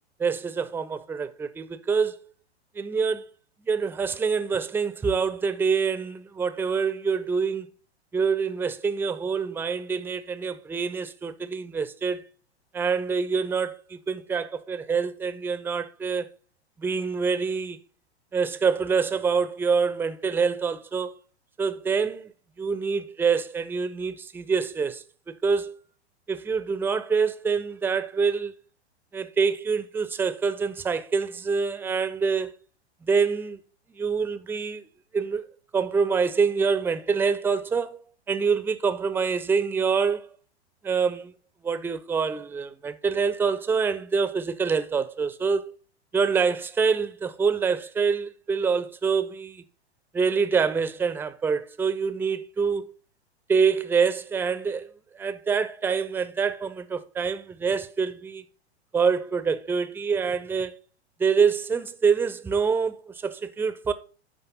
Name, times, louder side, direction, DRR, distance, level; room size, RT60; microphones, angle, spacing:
voice 1, 0.2-2.2 2.8-3.3 3.7-7.7 8.1-12.2 12.7-16.3 16.8-17.8 18.3-21.1 21.6-22.3 22.6-25.8 26.3-28.5 29.1-32.5 33.1-33.6 34.0-34.8 35.1-35.4 35.7-38.0 38.3-40.3 40.8-41.3 41.6-45.7 46.1-49.6 50.1-52.9 53.5-54.9 55.2-58.4 58.9-60.7 61.2-63.9, right 5 dB, 5° right, 0.5 m, -26 dB
9.8 x 5.5 x 5.4 m
figure-of-eight pair, 100°, 34 cm